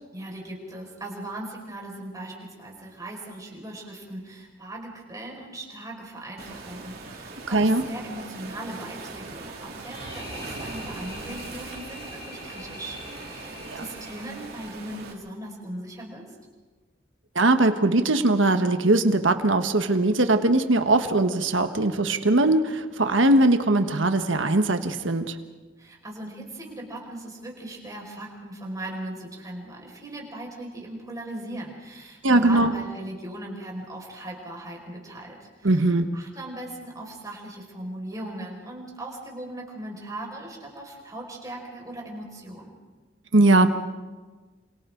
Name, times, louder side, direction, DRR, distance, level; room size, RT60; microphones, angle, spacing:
voice 1, 0.1-16.4 25.8-42.8, right 1 dB, 20° right, -1 dB, 5.5 m, -39 dB
Waves surf, 6.4-15.1, right 3 dB, 55° right, 3.2 m, -40 dB
voice 2, 7.5-7.8 13.7-13.8 17.3-25.4 32.2-32.7 35.6-36.1 43.3-43.7, right 2 dB, 80° right, 8 dB, 1.3 m, -20 dB
sound 1, 9.8-14.9, left 1 dB, 25° left, 5.1 m, -44 dB
28.5 x 27.0 x 3.9 m, 1.3 s
head